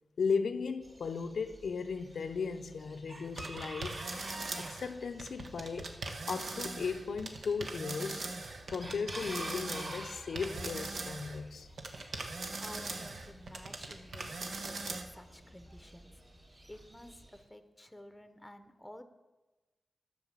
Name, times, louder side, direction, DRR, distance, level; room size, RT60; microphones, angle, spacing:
voice 1, 0.2-4.1 4.6-5.9 6.3-8.3 8.7-11.7, left 5 dB, 80° left, 0.6 m, -36 dB
Chicken rooster, 0.8-17.4, right 1 dB, 30° right, 3.3 m, -50 dB
sound 1, 3.4-4.9 5.2-11.4 11.8-15.0, right 3 dB, 70° right, 1.1 m, -40 dB
voice 2, 12.6-16.2 16.7-19.0, left 1 dB, 5° left, 0.9 m, -52 dB
11.5 x 5.9 x 7.4 m
wide cardioid pair, 100°, 0 cm